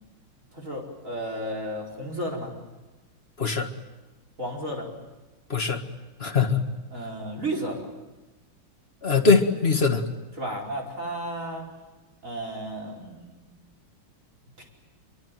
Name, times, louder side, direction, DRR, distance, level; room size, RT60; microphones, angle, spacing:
voice 1, 0.5-2.5 4.4-4.9 6.9-7.8 10.4-11.7 12.2-13.6 14.6-14.7, right 1 dB, 35° right, 0 dB, 5.3 m, -33 dB
voice 2, 6.2-6.6 9.0-10.0, left 4 dB, 30° left, 6 dB, 1.6 m, -21 dB
24.5 x 23.5 x 9.2 m, 1.1 s
omnidirectional pair, 2.4 m